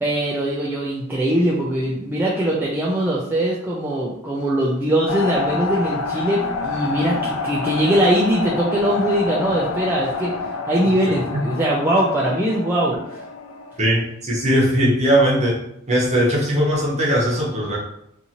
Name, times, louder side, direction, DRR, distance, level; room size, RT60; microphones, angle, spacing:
voice 1, 0.0-10.3 10.7-13.2, right 1 dB, 10° right, -6 dB, 0.3 m, -21 dB
sound 1, 5.1-14.0, left 4 dB, 80° left, 0.3 m, -28 dB
voice 2, 13.8-15.6 15.9-17.8, equal, 35° right, -4 dB, 0.9 m, -19 dB
2.6 x 2.5 x 2.8 m, 0.76 s
head